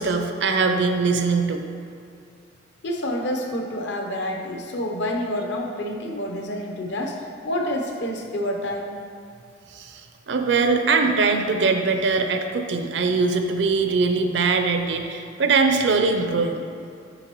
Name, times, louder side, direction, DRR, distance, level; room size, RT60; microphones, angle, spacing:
voice 1, 0.0-1.6 9.7-16.6, right 4 dB, 60° right, 5 dB, 0.5 m, -22 dB
voice 2, 2.8-7.2 7.4-9.0, left 1 dB, 60° left, 1 dB, 0.8 m, -28 dB
7.9 x 5.9 x 3.0 m, 2.5 s
head